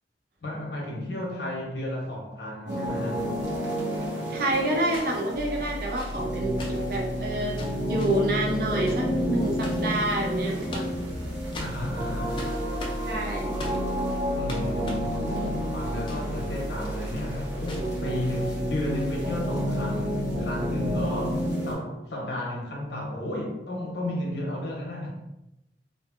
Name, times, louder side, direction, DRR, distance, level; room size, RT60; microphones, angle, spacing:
voice 1, 0.4-3.3 11.6-12.5 14.3-25.1, left 1 dB, 70° left, -1 dB, 0.7 m, -33 dB
sound 1, 2.7-21.7, equal, 80° right, 1.1 m, -30 dB
sound 2, 3.0-3.1 4.9-9.9 10.4-11.2 11.5-16.5 16.7-16.8 17.6-18.0 18.9-19.1, left 1 dB, 25° left, 0.3 m, -42 dB
voice 2, 4.3-7.5 7.9-10.9 13.0-13.5, right 1 dB, 55° right, 0 dB, 0.4 m, -28 dB
sound 3, 5.3-21.5, equal, 30° right, 1.0 m, -37 dB
2.6 x 2.4 x 2.4 m, 0.91 s
head